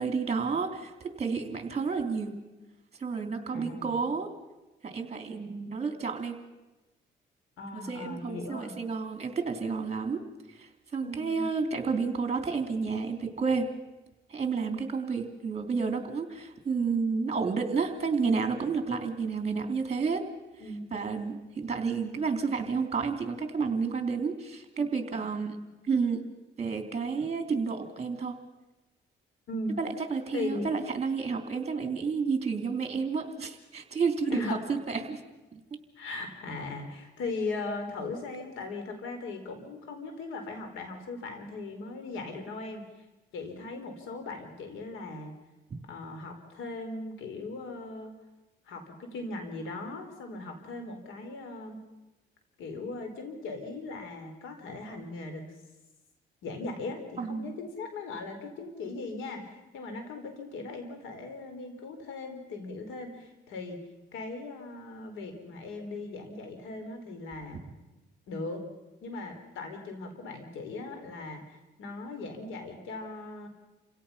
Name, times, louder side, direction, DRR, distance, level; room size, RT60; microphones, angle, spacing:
voice 1, 0.0-2.3 3.0-4.3 4.8-6.3 7.9-10.2 10.6-13.7 14.3-20.2 20.9-25.5 25.9-26.2 26.6-28.3 29.8-35.2 35.5-35.6 57.2-57.5, right 5 dB, 35° right, 6 dB, 3.3 m, -30 dB
voice 2, 3.5-3.9 7.6-8.8 11.0-11.5 20.6-20.9 29.5-29.8 30.3-30.7 34.3-34.6 36.0-43.0 43.3-45.3 45.9-48.1 48.6-51.8 52.6-55.4 56.4-63.8 64.1-67.6 68.3-68.6 69.0-73.5, left 3 dB, 90° left, 5 dB, 4.1 m, -38 dB
28.5 x 17.0 x 5.7 m, 1.1 s
cardioid pair, 90°, 20 cm